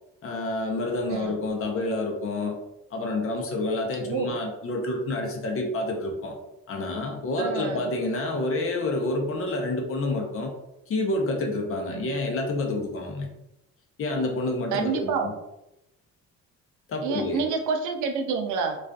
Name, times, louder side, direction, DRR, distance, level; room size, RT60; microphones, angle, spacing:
voice 1, 0.2-2.5 2.9-6.3 6.7-10.5 10.9-13.3 14.0-15.3 16.9-17.4, left 2 dB, 45° left, 2 dB, 0.6 m, -28 dB
voice 2, 4.1-4.4 7.4-7.9 11.9-12.1 14.7-15.3 17.0-18.8, right 5 dB, 85° right, 5 dB, 0.5 m, -28 dB
2.4 x 2.3 x 2.3 m, 0.88 s
cardioid pair, 90°, 30 cm